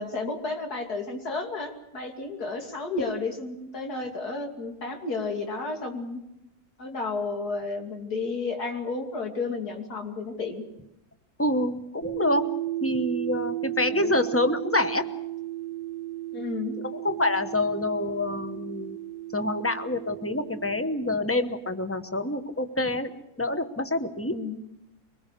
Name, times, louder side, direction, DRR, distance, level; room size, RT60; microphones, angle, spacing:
voice 1, 0.0-6.2 6.8-10.6 13.9-14.2 16.3-16.7 24.3-24.6, left 3 dB, 75° left, 3 dB, 3.1 m, -32 dB
voice 2, 11.4-12.4 12.8-15.0 16.9-19.0 19.3-23.1 23.4-24.4, left 2 dB, 10° left, 8 dB, 0.9 m, -27 dB
sound 1, 12.0-20.8, right 15 dB, 55° left, 4.3 m, -34 dB
23.5 x 20.0 x 6.7 m, 0.87 s
omnidirectional pair, 1.7 m